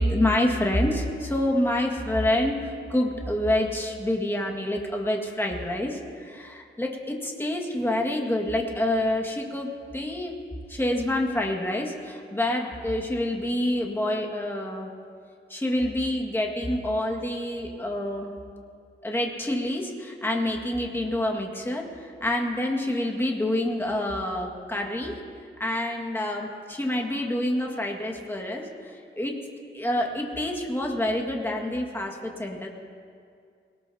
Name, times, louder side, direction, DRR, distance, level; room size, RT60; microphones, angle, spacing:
voice 1, 0.0-10.3 10.7-14.9 15.5-18.3 19.0-25.2 25.6-29.4 29.7-32.7, left 1 dB, 10° left, 0 dB, 1.8 m, -27 dB
21.5 x 19.0 x 2.8 m, 2.3 s
wide cardioid pair, 135°, 21 cm